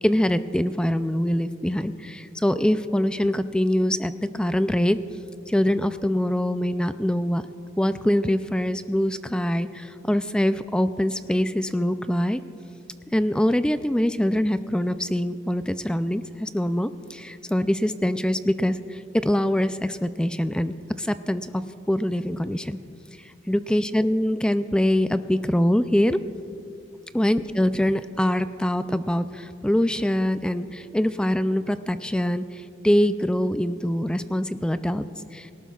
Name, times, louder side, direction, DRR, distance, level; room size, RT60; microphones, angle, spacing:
voice 1, 0.0-5.0 5.5-7.4 7.8-12.4 13.1-22.8 23.5-26.2 27.1-35.0 35.3-35.5, left 1 dB, 5° left, 12 dB, 0.3 m, -24 dB
19.0 x 18.0 x 2.4 m, 2.5 s
head